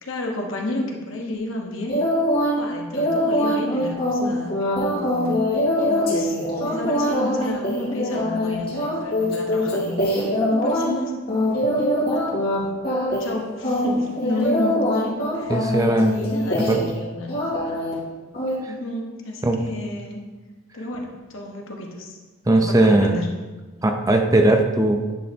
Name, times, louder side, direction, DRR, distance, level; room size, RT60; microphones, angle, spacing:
voice 1, 0.0-2.0 2.6-5.4 5.8-6.4 6.6-11.1 12.3-12.8 13.2-15.6 16.0-17.8 18.7-20.2 20.7-22.2 22.5-23.3, left 2 dB, 65° left, 0 dB, 1.1 m, -31 dB
sound 1, 1.9-2.6 2.9-10.9 11.3-12.6 12.8-13.3 13.6-17.0 17.3-17.9 18.3-18.5, left 1 dB, 50° left, 2.4 m, -23 dB
voice 2, 15.5-16.1 16.6-16.8 19.4-19.6 22.5-23.2 23.8-25.2, right 2 dB, 15° right, 4 dB, 0.4 m, -18 dB
10.0 x 3.3 x 4.3 m, 1.3 s
head